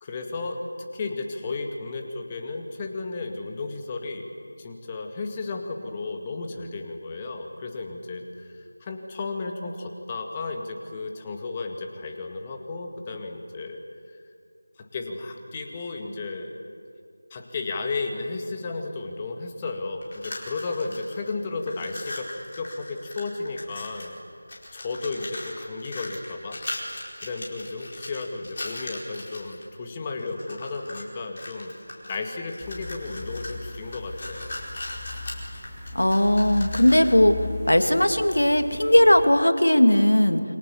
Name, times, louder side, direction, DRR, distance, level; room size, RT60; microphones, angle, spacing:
voice 1, 0.0-4.3 4.6-13.8 14.1-14.2 14.8-16.5 17.3-24.2 24.7-26.6 27.2-31.7 32.1-34.5, left 3 dB, 20° left, 3 dB, 2.0 m, -33 dB
sound 1, 20.0-21.3 21.6-24.2 24.5-29.6 30.2-31.1 31.4-37.2, left 1 dB, 35° left, 4.7 m, -39 dB
sound 2, 32.6-39.3, left 3 dB, ahead, 2.7 m, -38 dB
voice 2, 35.9-37.4 37.7-40.4, left 1 dB, 80° left, 8 dB, 2.2 m, -18 dB
28.5 x 23.5 x 7.2 m, 2.4 s
figure-of-eight pair, 165°, 0 cm